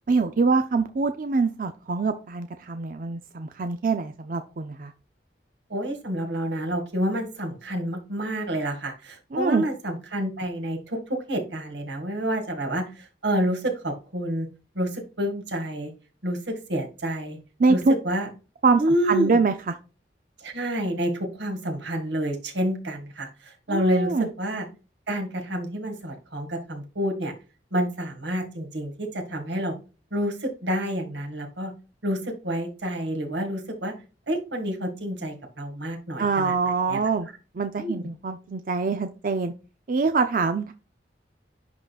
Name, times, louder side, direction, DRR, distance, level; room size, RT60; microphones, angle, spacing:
voice 1, 0.1-4.9 9.3-9.6 17.6-17.9 18.6-19.8 23.7-24.3 36.2-37.3 37.6-39.5 39.9-40.7, right 4 dB, 50° right, 7 dB, 0.5 m, -24 dB
voice 2, 5.7-14.5 14.8-15.9 16.2-17.4 17.7-17.8 18.0-18.3 18.8-19.4 20.4-24.6 25.1-27.3 27.7-29.7 30.1-31.7 32.0-33.9 34.3-36.5 36.9-37.0 37.8-38.1, equal, 80° right, 2 dB, 2.0 m, -28 dB
10.5 x 3.8 x 2.4 m, 0.32 s
head